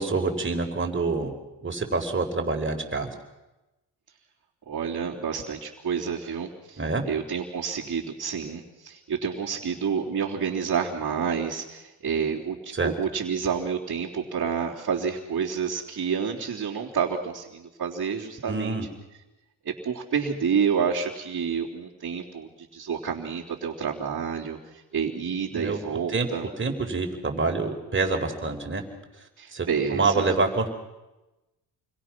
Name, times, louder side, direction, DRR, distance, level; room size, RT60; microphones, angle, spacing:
voice 1, 0.0-1.3 1.6-3.1 6.8-7.0 12.7-12.9 18.5-18.9 25.5-25.8 26.1-28.8 29.5-30.7, right 3 dB, 25° right, 3 dB, 4.6 m, -27 dB
voice 2, 4.7-18.8 19.7-26.5 29.4-30.4, right 6 dB, 40° right, -7 dB, 3.5 m, -29 dB
29.0 x 22.5 x 6.1 m, 1.0 s
cardioid pair, 85°, 46 cm